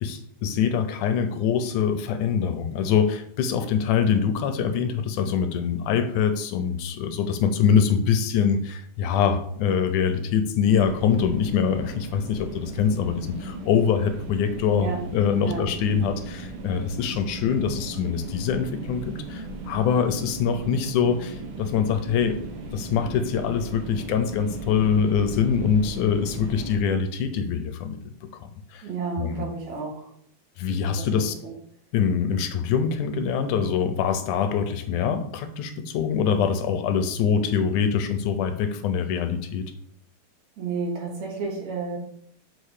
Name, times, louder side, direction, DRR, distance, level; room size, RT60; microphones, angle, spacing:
voice 1, 0.0-22.4 22.7-28.9 29.2-29.5 30.6-31.3 31.9-39.7, left 7 dB, 80° left, 8 dB, 2.2 m, -24 dB
sound 1, 10.7-26.8, right 2 dB, 80° right, 1.1 m, -37 dB
voice 2, 28.8-30.1 31.0-31.5 40.6-42.0, right 4 dB, 60° right, -2 dB, 3.4 m, -31 dB
6.6 x 5.3 x 6.5 m, 0.66 s
omnidirectional pair, 3.7 m